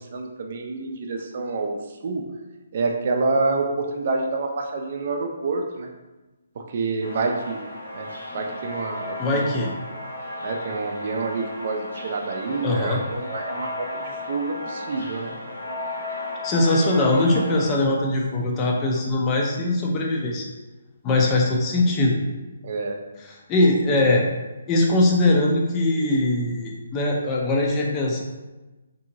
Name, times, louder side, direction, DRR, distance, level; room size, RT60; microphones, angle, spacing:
voice 1, 0.0-1.8 2.0-2.2 2.7-5.9 6.6-7.6 7.9-8.1 8.3-9.5 10.4-15.3 22.6-23.0, right 3 dB, 50° right, 3 dB, 0.4 m, -27 dB
sound 1, 7.0-17.7, left 1 dB, 90° left, 1.0 m, -34 dB
voice 2, 9.2-9.7 12.6-13.0 16.4-20.5 21.0-22.2 23.2-24.2 24.7-28.2, left 2 dB, 20° left, -1 dB, 0.4 m, -21 dB
2.7 x 2.7 x 2.7 m, 1.1 s
figure-of-eight pair, 145°, 0 cm